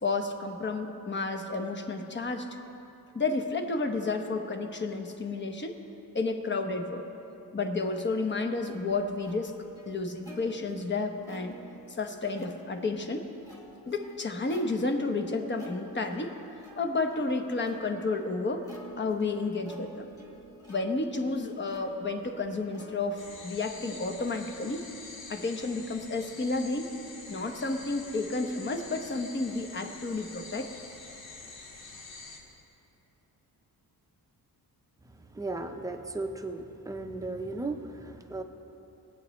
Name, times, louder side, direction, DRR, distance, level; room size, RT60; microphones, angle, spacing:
voice 1, 0.0-2.5 3.1-5.8 6.1-7.1 7.5-9.5 9.9-11.6 11.9-13.3 13.9-16.3 16.8-18.6 19.0-20.1 20.7-24.8 25.3-26.9 27.3-30.7, left 3 dB, 30° left, 5 dB, 0.9 m, -31 dB
Plucked string instrument, 8.3-25.1, right 1 dB, 10° left, 1.7 m, -52 dB
sound 1, 23.2-32.4, left 3 dB, 75° left, 2.0 m, -46 dB
voice 2, 35.1-38.4, right 2 dB, 10° right, 4 dB, 0.7 m, -36 dB
21.0 x 8.9 x 3.1 m, 2.9 s
wide cardioid pair, 135°, 37 cm